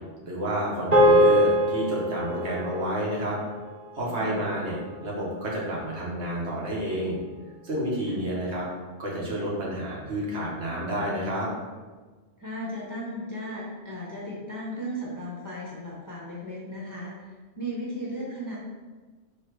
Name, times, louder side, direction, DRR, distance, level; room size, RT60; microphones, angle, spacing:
voice 1, 0.2-3.4 3.9-4.8 5.0-7.2 7.6-8.7 9.0-11.5, equal, 65° right, -4 dB, 1.3 m, -30 dB
sound 1, 0.9-5.4, equal, 35° right, 0.9 m, -24 dB
voice 2, 12.4-18.6, equal, 20° left, -6 dB, 0.6 m, -36 dB
3.2 x 2.9 x 4.6 m, 1.4 s
omnidirectional pair, 1.3 m